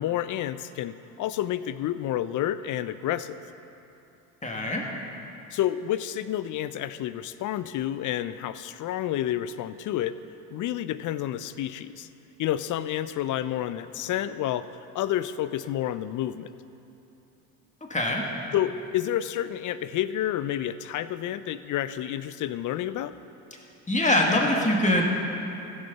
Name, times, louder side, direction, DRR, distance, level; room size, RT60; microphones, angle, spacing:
voice 1, 0.0-3.4 5.5-10.2 10.5-12.1 12.4-14.7 14.9-16.5 18.5-23.2, left 12 dB, 45° left, 14 dB, 0.5 m, -29 dB
voice 2, 4.4-4.9 17.9-18.3 23.9-25.0, left 1 dB, 15° left, 0 dB, 2.0 m, -23 dB
15.0 x 6.7 x 5.5 m, 2.9 s
hypercardioid pair, 70°, 43 cm